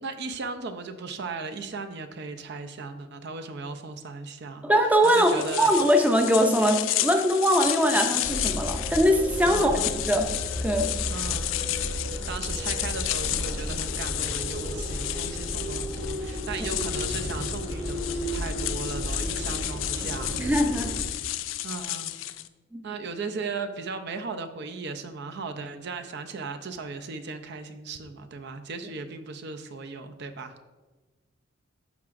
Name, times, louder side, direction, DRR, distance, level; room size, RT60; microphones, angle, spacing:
voice 1, 0.0-4.7 5.0-5.8 9.5-9.9 11.1-11.7 12.3-20.4 21.6-22.1 22.8-30.5, right 4 dB, 55° right, 7 dB, 0.5 m, -37 dB
voice 2, 4.6-9.7 10.1-10.3 10.6-10.9 20.4-20.9 22.7-22.8, equal, 5° right, 4 dB, 0.5 m, -22 dB
sound 1, 5.0-22.5, left 14 dB, 70° left, 0.3 m, -32 dB
sound 2, 8.2-21.0, equal, 75° right, 1.4 m, -33 dB
13.0 x 4.7 x 2.5 m, 1.2 s
head